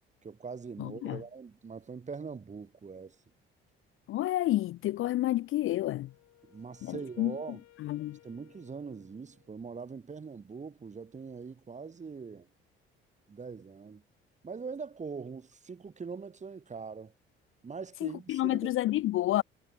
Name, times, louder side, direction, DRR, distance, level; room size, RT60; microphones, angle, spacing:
voice 1, 0.2-3.2 6.5-7.6 8.2-12.5 13.3-14.0 14.4-17.1 17.6-18.7, right 5 dB, 25° right, 1.1 m, -42 dB
voice 2, 0.8-1.2 4.1-6.1 6.8-7.3 7.8-8.2 18.0-19.4, left 15 dB, 45° left, 0.5 m, -29 dB
Wind instrument woodwind instrument, 5.4-9.8, left 14 dB, 60° left, 6.8 m, -62 dB
figure-of-eight pair, 50°, 30 cm